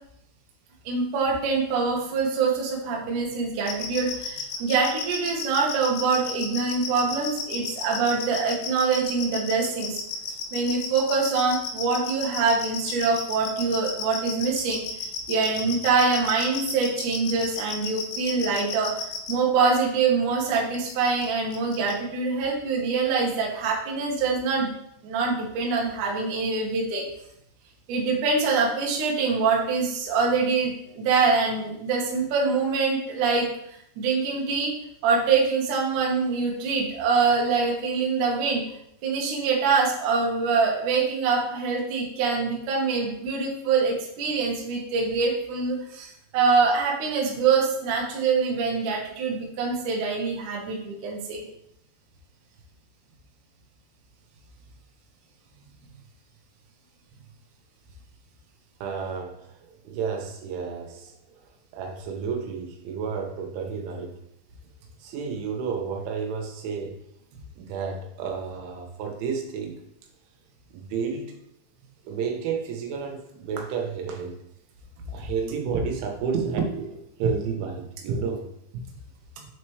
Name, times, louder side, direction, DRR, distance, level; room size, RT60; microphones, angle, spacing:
voice 1, 0.9-10.0 10.5-14.8 15.3-24.7 25.0-27.0 27.9-34.7 35.0-38.6 39.0-51.4, right 4 dB, 70° right, -2 dB, 2.0 m, -24 dB
sound 1, 3.7-19.3 20.7-21.3 21.5-21.9, left 5 dB, 85° left, 2.3 m, -33 dB
voice 2, 58.8-59.5 59.8-61.1 61.7-64.1 65.0-66.9 67.6-69.8 70.7-71.4 72.1-74.4 75.1-78.4, right 5 dB, 85° right, 3 dB, 3.4 m, -31 dB
6.9 x 4.4 x 3.2 m, 0.75 s
omnidirectional pair, 5.3 m